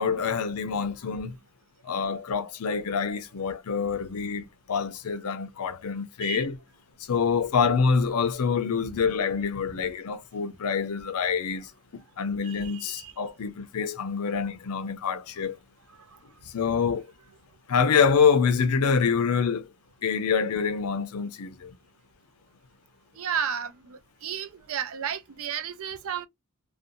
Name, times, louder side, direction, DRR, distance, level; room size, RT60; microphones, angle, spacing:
voice 1, 0.0-1.4 1.8-6.6 7.1-15.6 16.5-17.0 17.7-19.7 20.0-21.7, left 6 dB, 85° left, 0.5 m, -26 dB
voice 2, 12.4-13.1 23.2-26.3, right 8 dB, 65° right, 0.4 m, -33 dB
2.5 x 2.2 x 2.6 m
head